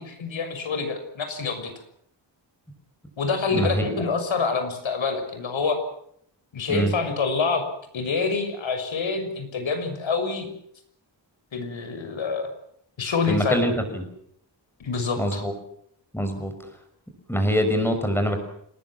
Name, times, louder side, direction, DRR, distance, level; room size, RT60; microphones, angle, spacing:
voice 1, 0.0-1.7 3.2-5.8 6.5-7.6 7.9-10.5 11.5-12.5 13.0-13.7 14.8-15.4, left 4 dB, 85° left, 7 dB, 6.6 m, -26 dB
voice 2, 3.5-3.8 6.7-6.9 13.3-14.0 15.2-15.5 16.1-16.5 17.3-18.4, equal, 5° left, 6 dB, 6.0 m, -24 dB
27.5 x 20.0 x 7.5 m, 0.70 s
wide cardioid pair, 150°, 45 cm